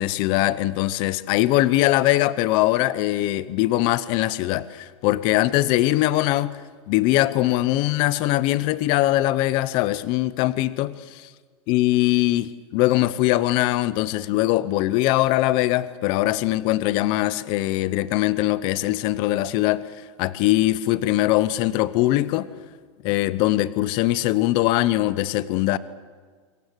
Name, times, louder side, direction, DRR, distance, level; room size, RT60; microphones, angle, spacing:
voice 1, 0.0-6.6 6.9-11.2 11.7-19.8 20.2-22.5 23.0-25.8, left 16 dB, 30° left, 17 dB, 0.7 m, -21 dB
25.0 x 22.0 x 8.1 m, 1.5 s
supercardioid pair, 170°, 16 cm